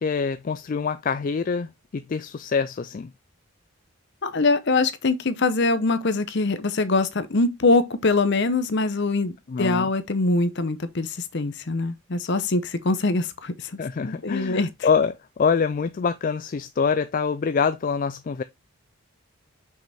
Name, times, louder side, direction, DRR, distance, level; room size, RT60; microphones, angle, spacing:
voice 1, 0.0-3.1 9.5-9.9 13.8-18.4, left 5 dB, 40° left, 0.3 m, -25 dB
voice 2, 4.2-13.7 14.0-14.7, left 3 dB, 55° left, 0.8 m, -23 dB
5.8 x 5.2 x 3.4 m
head